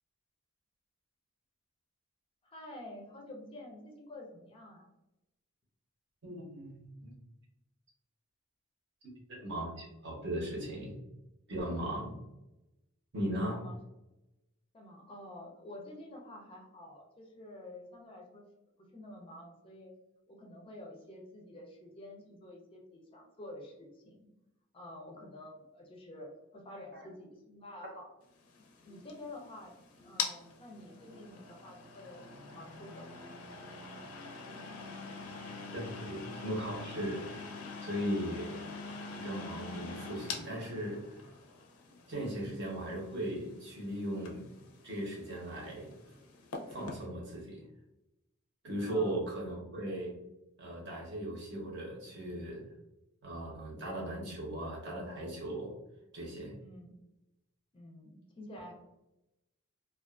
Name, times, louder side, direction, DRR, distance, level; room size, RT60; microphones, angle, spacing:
voice 1, 2.4-4.9 13.5-13.8 14.7-18.4 18.9-19.9 20.3-24.3 24.7-28.1 28.8-29.7 30.0-33.3 48.8-49.2 56.6-56.9 57.7-58.7, left 1 dB, 25° left, 1 dB, 0.4 m, -49 dB
voice 2, 6.2-7.1 9.0-11.0 11.5-12.2 13.1-13.6 27.8-27.9 35.7-37.3 37.8-38.6 39.2-41.2 42.1-44.4 44.8-46.0 46.7-47.6 48.6-50.2 50.6-52.7 53.2-55.7 56.1-56.6, right 1 dB, 55° right, -2 dB, 0.8 m, -38 dB
sound 1, 28.3-47.1, left 4 dB, 90° left, 0.5 m, -45 dB
2.3 x 2.3 x 2.3 m, 0.94 s
head